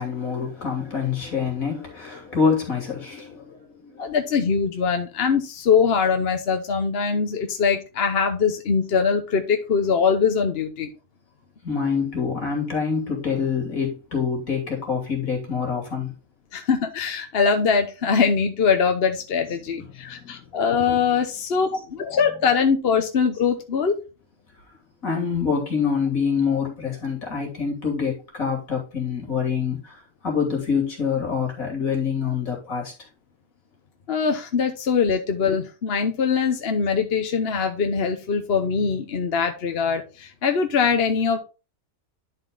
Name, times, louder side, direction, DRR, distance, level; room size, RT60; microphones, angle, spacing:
voice 1, 0.0-4.1 11.6-16.1 19.8-20.4 25.0-32.9, left 6 dB, 65° left, 3.1 m, -26 dB
voice 2, 4.0-10.9 16.5-23.9 34.1-41.4, left 6 dB, 50° left, 1.0 m, -22 dB
11.0 x 4.3 x 3.6 m
omnidirectional pair, 1.5 m